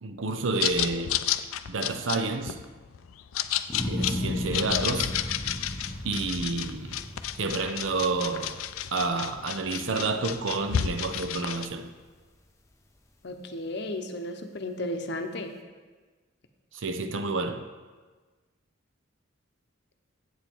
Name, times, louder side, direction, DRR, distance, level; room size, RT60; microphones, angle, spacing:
voice 1, 0.0-1.2 1.7-2.6 3.8-5.1 6.0-7.0 7.4-8.6 8.9-11.9 16.7-17.6, right 3 dB, 70° right, 0.6 m, -29 dB
sound 1, 0.6-11.7, left 10 dB, 90° left, 0.4 m, -32 dB
sound 2, 3.7-10.0 10.5-11.0, left 1 dB, 15° left, 0.6 m, -35 dB
voice 2, 13.2-15.5, left 1 dB, 55° left, 0.7 m, -34 dB
8.2 x 7.1 x 4.5 m
head